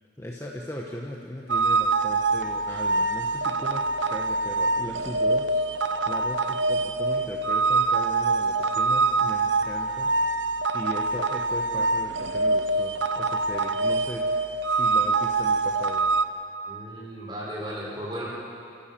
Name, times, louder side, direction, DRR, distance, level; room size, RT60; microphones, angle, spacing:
voice 1, 0.2-10.1 10.7-14.2 14.6-16.0, left 1 dB, 15° left, -2 dB, 1.2 m, -38 dB
sound 1, 1.5-16.2, right 3 dB, 75° right, 0.8 m, -25 dB
voice 2, 16.7-18.2, equal, 25° right, -5 dB, 5.7 m, -35 dB
27.5 x 14.5 x 7.6 m, 2.6 s
head